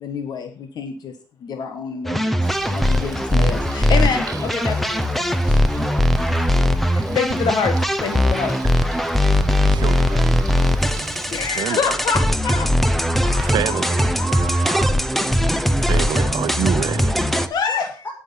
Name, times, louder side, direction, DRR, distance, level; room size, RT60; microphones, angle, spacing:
voice 1, 0.0-2.4 2.7-5.6 6.9-8.6 11.3-12.7 17.3-17.9, left 6 dB, 65° left, 1.4 m, -26 dB
sound 1, 2.0-17.5, equal, ahead, 0.8 m, -20 dB
Bird, 2.4-11.6, right 6 dB, 55° right, 1.8 m, -38 dB
voice 2, 9.7-10.3 11.5-11.8 13.5-14.0 15.8-17.1, right 11 dB, 85° right, 0.7 m, -26 dB
voice 3, 13.2-14.9 16.7-16.9 17.7-18.1, right 3 dB, 25° left, 6.8 m, -33 dB
18.0 x 6.5 x 5.7 m
wide cardioid pair, 170°, 8 cm